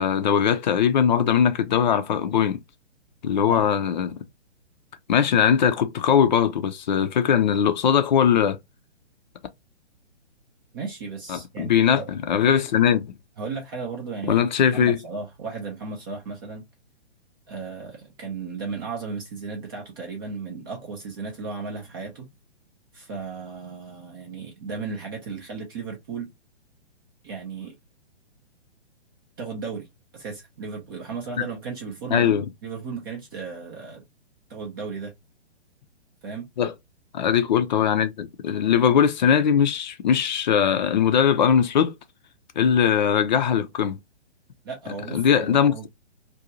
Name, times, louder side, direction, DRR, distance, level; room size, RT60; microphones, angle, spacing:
voice 1, 0.0-2.6 3.2-4.2 5.1-8.6 11.3-13.2 14.3-15.0 32.1-32.4 36.6-36.7 37.1-41.9 42.6-44.0 45.1-45.9, left 8 dB, 40° left, 0.5 m, -20 dB
voice 2, 10.7-12.1 13.4-16.6 17.5-22.3 22.9-26.3 27.2-27.7 29.4-29.9 30.1-34.0 34.5-35.1 36.2-36.5 44.6-45.9, right 4 dB, 20° right, 0.5 m, -35 dB
2.6 x 2.3 x 2.8 m
figure-of-eight pair, 125°, 34 cm